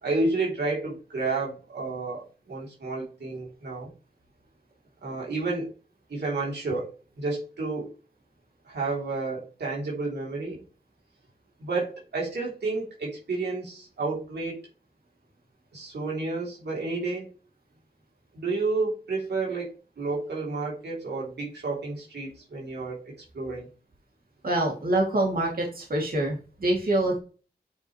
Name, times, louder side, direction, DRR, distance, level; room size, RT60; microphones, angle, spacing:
voice 1, 0.0-3.9 5.0-5.7 6.1-7.9 8.6-10.6 11.6-14.6 15.7-17.3 18.3-23.7, right 3 dB, 85° right, -4 dB, 3.3 m, -31 dB
voice 2, 24.4-27.2, right 1 dB, 60° right, -1 dB, 2.7 m, -25 dB
8.9 x 5.1 x 3.2 m, 0.35 s
cardioid pair, 45°, 17 cm